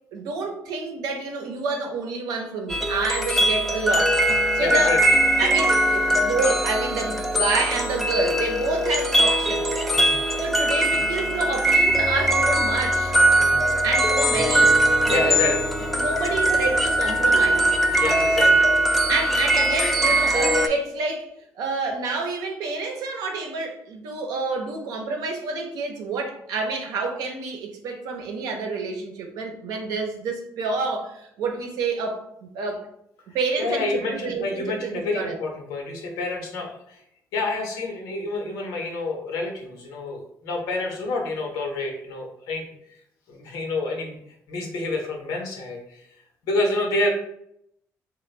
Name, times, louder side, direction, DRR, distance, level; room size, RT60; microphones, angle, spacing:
voice 1, 0.1-5.0 5.4-9.7 10.4-13.1 13.8-15.6 15.9-17.7 19.1-21.3 21.6-32.8 33.3-35.4, right 3 dB, 80° right, 3 dB, 0.6 m, -28 dB
sound 1, 2.7-20.7, right 1 dB, ahead, 0.4 m, -21 dB
voice 2, 4.6-5.2 9.9-10.3 13.4-13.7 15.1-15.6 18.0-18.7 33.6-37.0 37.3-42.6 43.3-44.2 44.5-46.1 46.4-47.1, left 2 dB, 85° left, 1 dB, 0.8 m, -28 dB
3.3 x 2.2 x 3.2 m, 0.74 s
cardioid pair, 85°, 6 cm